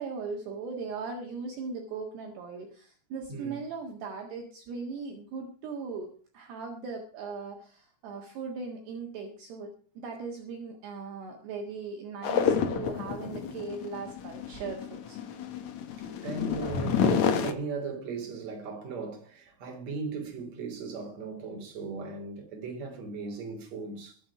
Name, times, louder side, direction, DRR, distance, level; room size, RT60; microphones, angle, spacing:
voice 1, 0.0-15.2, right 4 dB, 65° right, 3.5 m, -39 dB
voice 2, 3.3-3.6 16.0-24.2, right 4 dB, 40° right, 4.0 m, -37 dB
sound 1, 12.2-17.5, left 7 dB, 85° left, 1.6 m, -29 dB
22.5 x 8.0 x 4.9 m
omnidirectional pair, 5.6 m